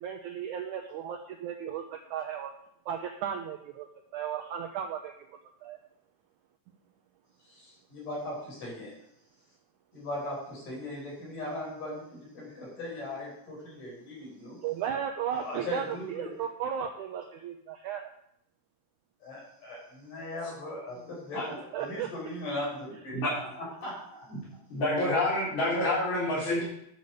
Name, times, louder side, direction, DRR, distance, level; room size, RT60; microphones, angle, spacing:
voice 1, 0.0-2.5 2.9-3.9 4.1-5.1 5.6-5.8 14.6-18.1 21.5-22.1, right 8 dB, 80° right, 4 dB, 1.7 m, -35 dB
voice 2, 7.5-8.9 9.9-14.6 15.3-16.3 19.2-23.5 23.8-24.2, left 1 dB, 55° left, -4 dB, 6.1 m, -39 dB
voice 3, 24.7-26.6, left 1 dB, 75° left, -11 dB, 6.2 m, -27 dB
11.0 x 6.9 x 6.5 m, 0.74 s
omnidirectional pair, 4.4 m